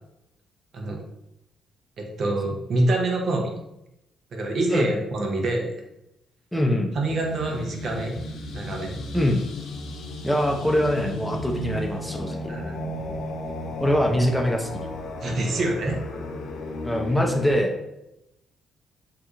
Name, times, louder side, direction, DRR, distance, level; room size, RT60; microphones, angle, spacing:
voice 1, 2.0-3.5 4.3-5.7 6.9-8.1 8.5-9.0 12.5-12.8 15.2-16.0, right 2 dB, 60° right, 1 dB, 0.7 m, -26 dB
voice 2, 6.5-6.9 9.1-9.4 10.2-12.4 13.8-14.9 16.8-17.8, left 1 dB, 5° left, 1 dB, 0.5 m, -23 dB
sound 1, 7.0-17.5, left 1 dB, 75° left, 0.5 m, -34 dB
2.8 x 2.4 x 3.6 m, 0.87 s
cardioid pair, 90°, 0 cm